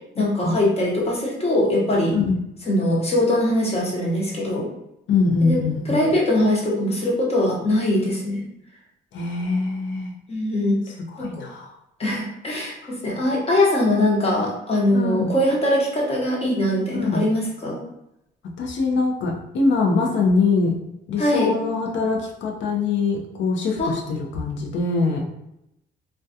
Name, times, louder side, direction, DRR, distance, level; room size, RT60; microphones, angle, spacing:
voice 1, 0.2-2.2 2.7-4.7 5.4-8.4 10.3-10.8 11.2-11.3 12.0-17.8 21.2-21.5 23.8-23.9, left 1 dB, 30° left, -3 dB, 0.9 m, -22 dB
voice 2, 5.1-6.1 9.1-10.1 11.1-11.7 12.8-12.9 14.9-15.3 17.0-17.2 18.6-20.7 21.1-25.2, left 4 dB, 70° left, 1 dB, 0.6 m, -23 dB
2.3 x 2.2 x 2.7 m, 0.84 s
cardioid pair, 90°, 20 cm